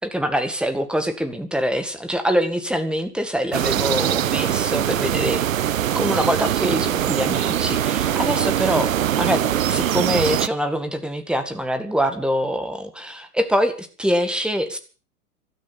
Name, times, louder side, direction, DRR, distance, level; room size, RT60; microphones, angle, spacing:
voice 1, 0.0-5.4 5.9-8.9 9.2-14.8, equal, ahead, 8 dB, 1.9 m, -24 dB
sound 1, 3.5-10.5, right 11 dB, 60° right, 0.9 m, -22 dB
15.0 x 13.5 x 7.1 m, 0.39 s
figure-of-eight pair, 105°, 45 cm